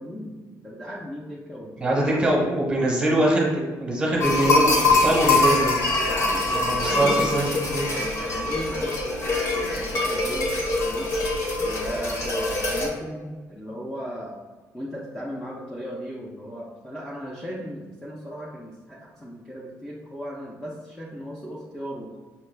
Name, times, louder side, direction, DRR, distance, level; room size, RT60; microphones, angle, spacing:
voice 1, 0.0-2.4 6.0-10.6 10.8-11.3 11.6-14.4 14.7-22.1, equal, 5° left, -5 dB, 0.4 m, -36 dB
voice 2, 1.8-5.8 6.5-8.0, right 1 dB, 15° right, -3 dB, 0.8 m, -23 dB
sound 1, 4.2-12.9, left 2 dB, 55° left, 0.8 m, -23 dB
5.6 x 2.2 x 3.2 m, 1.3 s
cardioid pair, 180°, 6 cm